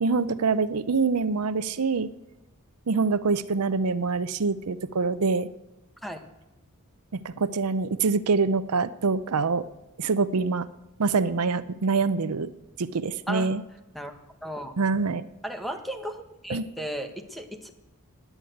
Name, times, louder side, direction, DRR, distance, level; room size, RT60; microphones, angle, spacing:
voice 1, 0.0-2.1 2.9-5.5 7.1-9.6 10.0-10.7 11.0-12.5 12.8-13.6 14.8-15.2 16.5-16.6, right 4 dB, 85° right, 14 dB, 0.7 m, -25 dB
voice 2, 13.9-14.8 15.4-17.7, equal, ahead, 6 dB, 1.2 m, -35 dB
17.0 x 10.0 x 7.9 m, 0.95 s
head